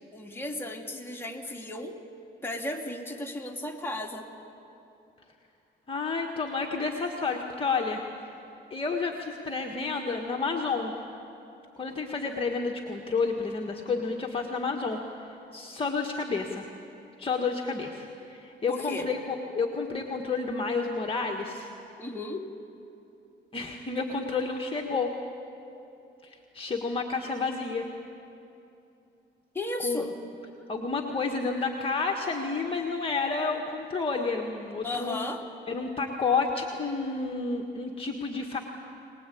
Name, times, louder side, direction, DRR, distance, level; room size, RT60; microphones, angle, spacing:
voice 1, 0.1-2.0 2.4-4.3 18.7-19.1 22.0-22.5 29.5-30.1 34.8-35.4, left 1 dB, 10° left, 0 dB, 2.6 m, -34 dB
voice 2, 5.9-8.0 8.7-10.9 11.8-15.0 15.5-16.6 17.2-19.2 19.5-21.7 23.5-25.1 26.2-27.9 29.8-30.1 30.7-35.2 35.7-38.6, left 4 dB, 25° left, 2 dB, 1.7 m, -30 dB
23.0 x 20.5 x 8.6 m, 2.8 s
cardioid pair, 90°, 20 cm